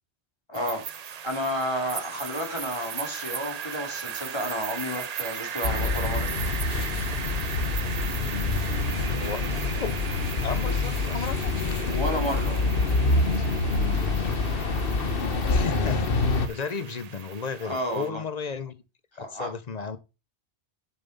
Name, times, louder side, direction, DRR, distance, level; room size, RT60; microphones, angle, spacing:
voice 1, 0.5-0.8 1.2-6.3 10.6-10.7 11.8-12.9 17.6-18.2 19.2-19.5 19.8-20.0, equal, 25° left, 2.7 m, -31 dB
sound 1, 0.5-18.1, right 8 dB, 50° right, 0.5 m, -37 dB
sound 2, 5.6-16.5, left 3 dB, 60° left, 1.2 m, -26 dB
voice 2, 10.4-11.5 15.5-18.8 19.2-20.0, left 5 dB, 40° left, 0.8 m, -34 dB
8.2 x 7.2 x 5.4 m
omnidirectional pair, 1.1 m